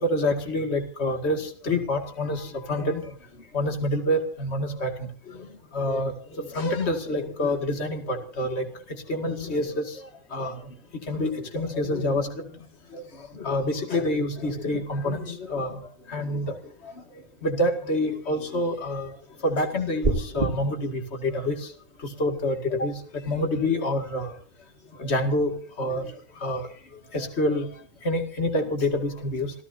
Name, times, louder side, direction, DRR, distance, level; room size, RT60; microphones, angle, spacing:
voice 1, 0.0-3.1 3.5-4.9 5.7-6.1 6.4-8.7 9.1-9.8 10.3-10.5 11.1-12.4 12.9-13.0 13.3-15.8 16.1-16.6 16.8-16.9 17.4-19.1 19.4-21.5 22.2-22.9 23.3-24.3 25.0-26.1 26.4-26.7 27.1-27.7 28.0-29.5, left 1 dB, 45° left, 4 dB, 2.5 m, -27 dB
sound 1, 20.0-20.5, right 2 dB, 30° right, 2.5 m, -24 dB
28.0 x 15.5 x 2.7 m, 0.41 s
omnidirectional pair, 1.6 m